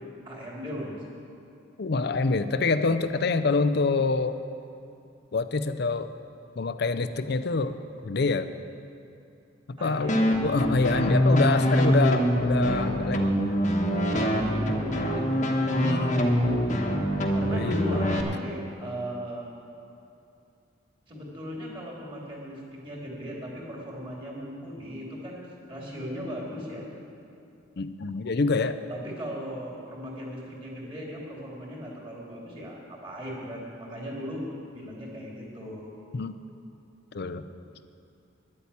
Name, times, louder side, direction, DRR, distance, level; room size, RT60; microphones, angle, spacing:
voice 1, 0.2-1.0 9.8-10.2 14.2-15.5 15.8-16.9 17.3-19.5 21.1-26.8 28.9-34.5 34.7-35.9, equal, 25° right, -3 dB, 2.7 m, -37 dB
voice 2, 1.8-4.4 5.3-6.1 6.6-7.8 8.0-8.5 9.7-13.4 15.8-16.3 17.5-17.8 27.8-28.8 36.1-36.3 37.1-37.5, left 3 dB, 55° left, 12 dB, 0.5 m, -26 dB
sound 1, 10.1-18.2, equal, 40° left, 1.1 m, -24 dB
11.0 x 8.5 x 8.4 m, 2.6 s
head